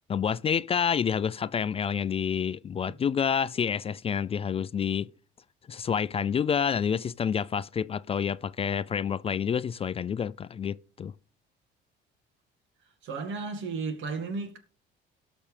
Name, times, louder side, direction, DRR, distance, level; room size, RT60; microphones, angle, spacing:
voice 1, 0.1-5.1 5.7-11.1, left 7 dB, 30° left, 0.4 m, -28 dB
voice 2, 13.0-14.6, right 4 dB, 75° right, 2.1 m, -33 dB
17.5 x 6.1 x 3.4 m
cardioid pair, 105°, 20 cm